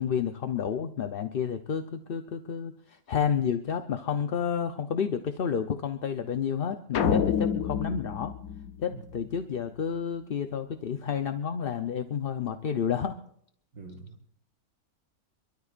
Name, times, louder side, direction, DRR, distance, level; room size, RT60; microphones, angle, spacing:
voice 1, 0.0-8.3 8.8-13.2, left 7 dB, 50° left, 7 dB, 0.8 m, -30 dB
sound 1, 6.9-9.4, left 7 dB, 75° left, 1.3 m, -28 dB
voice 2, 13.7-14.3, right 3 dB, 90° right, -3 dB, 2.1 m, -45 dB
26.5 x 13.0 x 2.5 m, 0.63 s
omnidirectional pair, 1.6 m